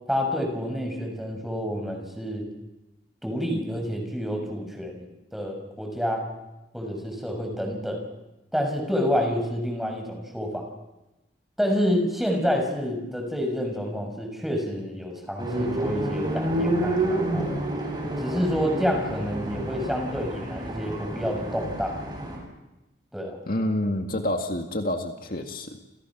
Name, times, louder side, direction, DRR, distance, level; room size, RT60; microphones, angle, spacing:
voice 1, 0.1-2.4 3.2-5.0 5.3-6.3 6.7-8.0 8.5-10.7 11.6-17.6 18.2-22.0 23.1-23.4, equal, ahead, 3 dB, 6.5 m, -28 dB
sound 1, 15.4-22.4, right 1 dB, 25° right, 7.9 m, -29 dB
voice 2, 23.5-25.8, left 1 dB, 55° left, 3 dB, 2.1 m, -28 dB
30.0 x 28.0 x 6.2 m, 0.98 s
head